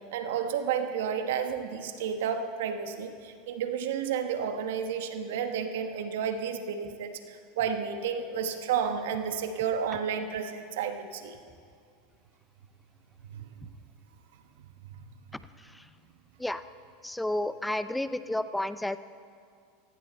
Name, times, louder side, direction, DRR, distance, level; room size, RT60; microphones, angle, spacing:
voice 1, 0.1-11.4 13.3-13.7 14.9-15.0, right 7 dB, 75° right, 7 dB, 1.3 m, -31 dB
voice 2, 17.0-19.0, left 1 dB, 5° left, 13 dB, 0.6 m, -31 dB
18.0 x 15.5 x 4.3 m, 2.2 s
hypercardioid pair, 110°, 0 cm